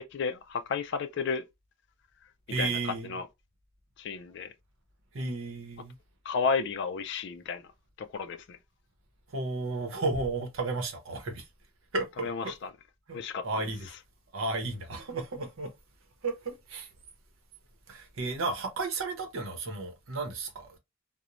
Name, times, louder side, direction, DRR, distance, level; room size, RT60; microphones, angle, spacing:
voice 1, 0.0-1.4 2.6-3.3 4.0-4.5 6.3-7.6 8.0-8.6 12.2-12.7 13.1-13.7, left 5 dB, 55° left, 0.3 m, -32 dB
voice 2, 2.5-3.2 5.1-5.9 9.3-11.4 11.9-12.5 13.1-13.9 14.3-15.7 16.2-16.9 17.9-20.8, right 3 dB, 70° right, 0.7 m, -33 dB
2.9 x 2.1 x 2.4 m
head